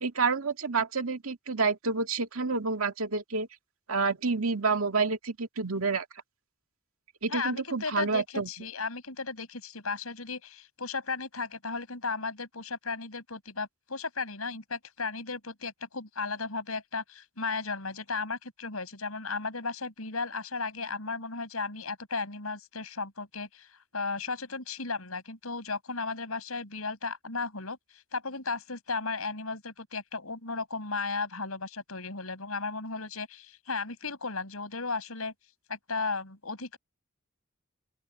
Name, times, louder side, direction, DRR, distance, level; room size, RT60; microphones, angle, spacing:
voice 1, 0.0-3.5 3.9-6.0 7.2-8.5, right 4 dB, 80° right, 2.1 m, -29 dB
voice 2, 7.3-23.7 23.9-35.3 35.7-36.8, left 4 dB, 85° left, 6.5 m, -35 dB
open air
head